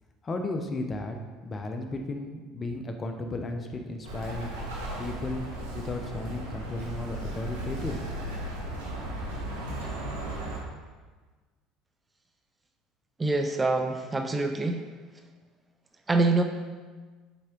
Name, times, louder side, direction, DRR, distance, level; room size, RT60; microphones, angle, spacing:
voice 1, 0.2-1.2 1.4-4.5 5.0-5.5 5.7-8.0 8.2-8.3, left 2 dB, 30° left, 5 dB, 0.9 m, -34 dB
Bird, 4.0-10.6, right 1 dB, 90° right, 1.8 m, -36 dB
voice 2, 13.2-14.8 16.1-16.4, right 3 dB, 20° right, 5 dB, 0.6 m, -25 dB
7.1 x 4.8 x 4.5 m, 1.4 s
supercardioid pair, 85°, 0 cm